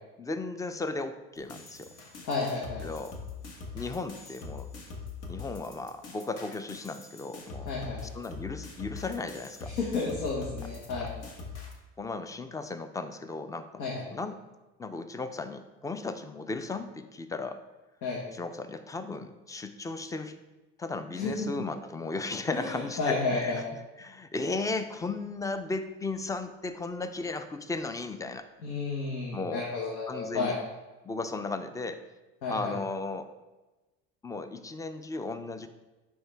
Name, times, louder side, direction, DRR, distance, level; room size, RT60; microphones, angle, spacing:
voice 1, 0.2-1.9 2.8-3.1 3.7-4.7 5.3-7.7 8.1-9.8 11.0-11.1 12.0-13.9 14.1-14.4 14.8-17.6 18.3-20.4 20.8-23.5 24.0-28.5 29.3-29.7 30.1-30.6 31.0-32.0 32.5-33.3 34.2-35.7, left 3 dB, 10° left, 10 dB, 0.4 m, -35 dB
sound 1, 1.4-11.7, left 5 dB, 60° left, 1.5 m, -42 dB
voice 2, 2.2-2.8 7.7-8.0 9.6-11.1 13.8-14.0 18.0-18.2 21.1-21.5 22.5-23.7 28.6-30.6 32.4-32.7, left 4 dB, 80° left, -4 dB, 1.3 m, -32 dB
9.7 x 3.7 x 3.4 m, 1.1 s
supercardioid pair, 95°, 29 cm